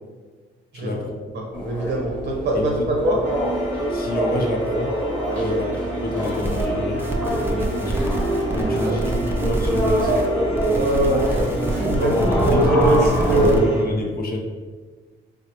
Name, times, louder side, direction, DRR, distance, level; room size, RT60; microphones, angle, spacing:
voice 1, 0.7-1.2 2.5-2.7 3.9-5.0 5.4-5.7 5.9-8.2 8.5-10.9 11.9-12.3 12.5-14.4, left 1 dB, 50° left, 1 dB, 0.6 m, -28 dB
voice 2, 1.3-3.2 5.3-5.6 8.8-9.0 10.7-12.1 12.4-13.7, right 1 dB, 60° right, 0 dB, 0.9 m, -22 dB
sound 1, 1.5-13.5, equal, 5° left, 0.9 m, -25 dB
sound 2, 3.2-13.9, right 2 dB, 70° left, 0.9 m, -31 dB
sound 3, 6.2-6.7 7.0-10.3 10.5-13.6, right 2 dB, 10° right, 0.5 m, -27 dB
3.9 x 2.1 x 2.9 m, 1.4 s
cardioid pair, 90°, 20 cm